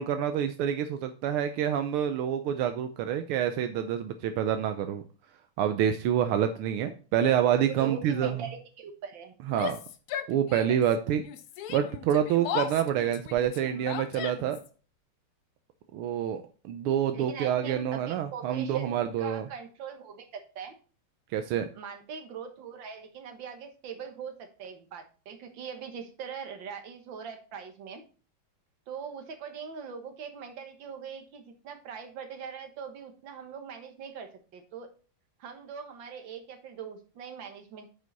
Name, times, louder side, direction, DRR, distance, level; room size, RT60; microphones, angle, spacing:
voice 1, 0.0-5.0 5.6-8.4 9.5-9.8 10.3-11.2 11.7-14.6 15.9-19.5 21.3-21.7, right 9 dB, 85° right, 8 dB, 1.6 m, -27 dB
voice 2, 7.6-9.3 17.1-20.8 21.7-28.0 28.9-34.9 35.4-37.9, right 6 dB, 60° right, 5 dB, 2.0 m, -42 dB
Yell, 9.5-10.9 11.2-14.7, left 9 dB, 70° left, 0.9 m, -37 dB
9.4 x 5.3 x 4.0 m, 0.37 s
omnidirectional pair, 2.4 m